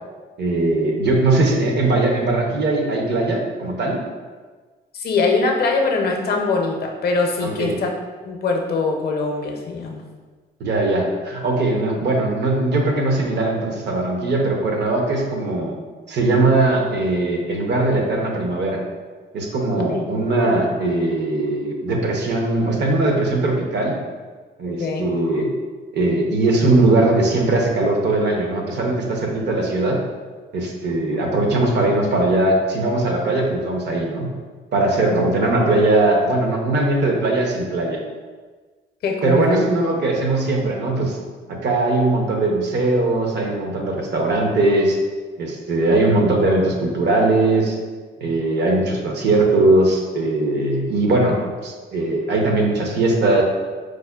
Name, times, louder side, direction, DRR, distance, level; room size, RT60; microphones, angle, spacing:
voice 1, 0.4-4.0 7.4-7.8 10.6-15.7 16.1-18.8 19.3-24.0 24.6-25.5 25.9-30.0 30.5-34.3 34.7-38.0 39.2-41.2 41.5-45.0 45.4-47.8 48.2-53.4, right 2 dB, 60° right, 1 dB, 0.6 m, -20 dB
voice 2, 4.9-7.9 8.2-10.0 19.9-20.0 24.7-25.1 35.1-35.2 39.0-39.6, left 3 dB, 55° left, 1 dB, 0.5 m, -22 dB
4.7 x 2.1 x 2.2 m, 1.4 s
cardioid pair, 90°, 20 cm